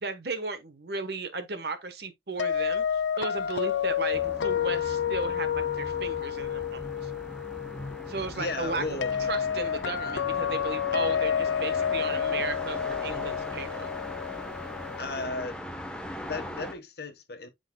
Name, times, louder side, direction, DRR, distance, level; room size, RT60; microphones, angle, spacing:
voice 1, 0.0-7.1 8.1-8.8 9.3-13.9, right 3 dB, 60° right, 1.2 m, -35 dB
sound 1, 2.4-15.3, left 8 dB, 75° left, 0.4 m, -30 dB
sound 2, 4.1-16.7, left 1 dB, 5° left, 1.0 m, -40 dB
voice 2, 8.3-9.1 15.0-15.6 16.2-17.5, left 3 dB, 55° left, 1.3 m, -34 dB
11.5 x 4.0 x 2.2 m
head